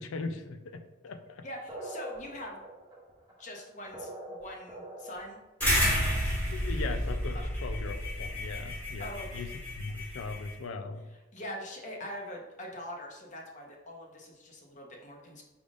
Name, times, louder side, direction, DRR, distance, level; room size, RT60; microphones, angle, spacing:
voice 1, 0.0-1.4 6.5-9.5 9.8-11.1, left 3 dB, 85° left, 8 dB, 0.4 m, -39 dB
voice 2, 1.4-2.6 3.4-5.4 7.3-7.4 9.0-9.4 11.3-15.4, left 1 dB, 40° left, 1 dB, 0.7 m, -43 dB
sound 1, 1.7-5.4, right 1 dB, 20° right, 0.7 m, -43 dB
sound 2, 5.6-10.5, equal, 10° left, 1.2 m, -30 dB
4.9 x 3.4 x 2.5 m, 1.1 s
head